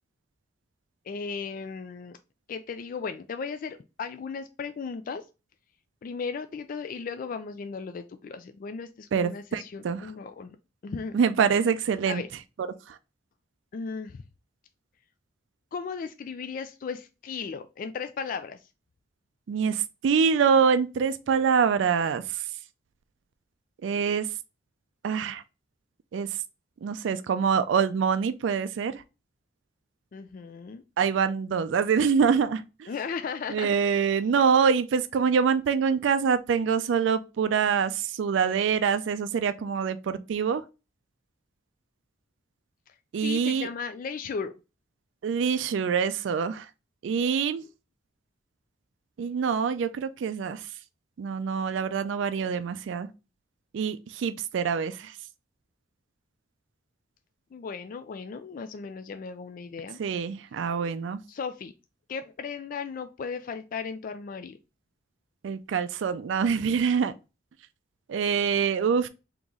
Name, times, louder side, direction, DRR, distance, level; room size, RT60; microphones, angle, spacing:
voice 1, 1.0-2.2 2.5-5.3 6.0-10.5 10.8-11.2 12.1-12.3 13.7-14.2 15.7-18.7 30.1-30.8 32.9-33.7 42.9-44.6 57.5-60.0 61.3-61.7 62.1-64.6, left 5 dB, 45° left, 0.3 m, -36 dB
voice 2, 9.1-10.1 11.1-12.2 12.9-13.0 19.5-22.5 23.8-24.3 25.0-25.4 26.1-26.4 26.8-29.0 31.0-32.9 33.5-40.6 43.1-43.7 45.2-46.7 47.0-47.6 49.2-50.8 51.2-53.1 53.7-55.2 60.0-61.2 65.4-67.1 68.1-69.1, right 6 dB, 80° right, 0.4 m, -25 dB
3.9 x 2.9 x 3.6 m
head